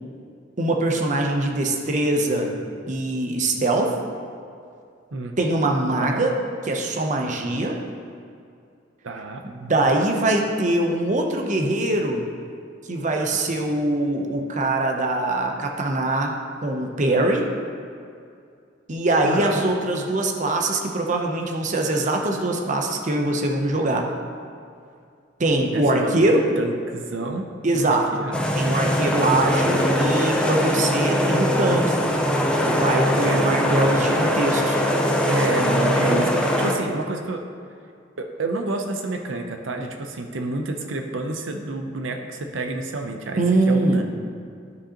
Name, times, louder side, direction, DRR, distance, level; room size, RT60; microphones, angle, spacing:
voice 1, 0.6-2.5 2.9-3.9 5.4-6.4 6.7-7.8 9.4-12.3 12.9-16.3 16.6-17.5 18.9-24.1 25.4-26.5 27.6-28.1 28.5-32.0 32.7-34.8 43.4-44.0, right 2 dB, 40° right, 2 dB, 0.7 m, -22 dB
voice 2, 9.0-9.4 19.2-19.7 25.7-27.4 27.7-28.4 33.2-33.7 35.3-37.4 38.2-44.0, right 2 dB, 90° right, 4 dB, 0.6 m, -29 dB
sound 1, 28.3-36.8, equal, 5° left, 0.6 m, -21 dB
12.5 x 5.1 x 2.9 m, 2.4 s
head